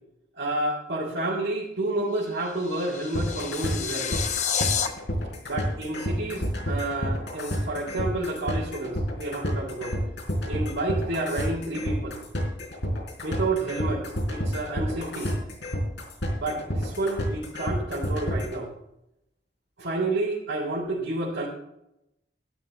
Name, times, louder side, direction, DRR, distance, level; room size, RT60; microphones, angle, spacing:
voice 1, 0.3-4.3 5.4-10.0 10.4-12.2 13.2-15.3 16.3-18.7 19.8-21.5, right 2 dB, 85° right, -6 dB, 3.4 m, -30 dB
sound 1, 2.2-4.9, left 7 dB, 40° left, 1.0 m, -30 dB
sound 2, 3.1-18.6, equal, 75° left, 4.2 m, -29 dB
12.5 x 10.5 x 4.0 m, 0.84 s
head